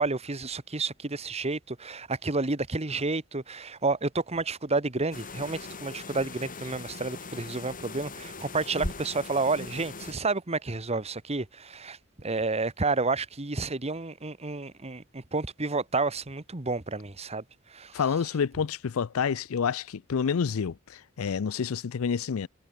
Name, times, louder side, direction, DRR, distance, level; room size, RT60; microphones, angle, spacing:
voice 1, 0.0-17.4 17.7-18.0, right 3 dB, 30° right, 1.4 m, -30 dB
sound 1, 5.1-10.1, left 3 dB, 40° left, 3.3 m, -40 dB
voice 2, 17.9-22.5, left 6 dB, 75° left, 0.5 m, -28 dB
head